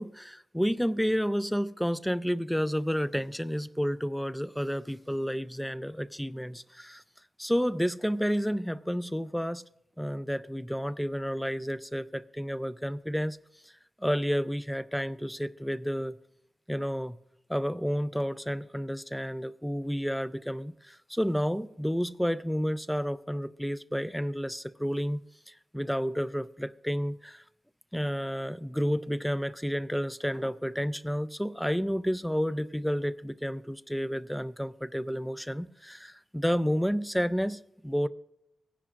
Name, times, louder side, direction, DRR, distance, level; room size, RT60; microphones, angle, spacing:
voice 1, 0.0-7.0 7.4-9.6 10.0-13.4 13.6-13.7 14.0-16.2 16.7-17.2 17.5-27.4 27.9-38.1, equal, ahead, 0.3 m, -31 dB
18.5 x 10.0 x 2.4 m
wide cardioid pair, 150°, 0 cm